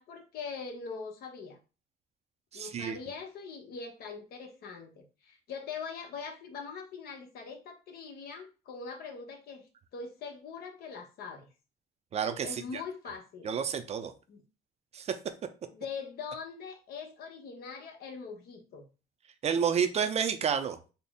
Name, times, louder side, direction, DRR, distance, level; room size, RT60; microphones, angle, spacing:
voice 1, 0.0-1.6 2.5-11.5 12.4-13.5 14.3-14.4 15.7-18.9, left 5 dB, 65° left, 5 dB, 0.9 m, -42 dB
voice 2, 2.5-3.0 12.1-12.8 13.4-14.1 14.9-15.2 19.4-20.8, right 7 dB, 40° right, 9 dB, 0.4 m, -30 dB
4.1 x 2.0 x 3.5 m, 0.33 s
cardioid pair, 110°, 17 cm